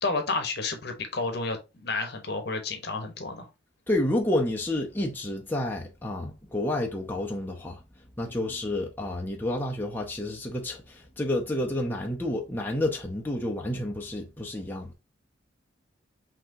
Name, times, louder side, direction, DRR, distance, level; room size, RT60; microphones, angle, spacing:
voice 1, 0.0-3.5 8.3-8.4, left 3 dB, 60° left, 1.1 m, -31 dB
voice 2, 3.9-7.8 8.2-14.9, left 1 dB, 10° left, 0.7 m, -30 dB
5.8 x 2.9 x 2.7 m
head